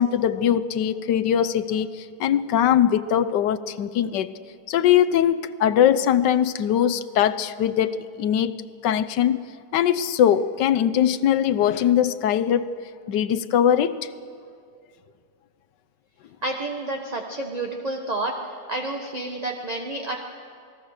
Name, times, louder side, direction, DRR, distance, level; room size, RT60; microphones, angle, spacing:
voice 1, 0.0-4.3 4.7-8.6 8.8-9.4 9.7-12.7 13.1-14.1, left 10 dB, 75° left, 14 dB, 1.4 m, -21 dB
voice 2, 16.4-18.3 18.7-20.2, right 2 dB, 25° right, 2 dB, 1.1 m, -29 dB
28.5 x 19.5 x 6.5 m, 2.3 s
omnidirectional pair, 1.9 m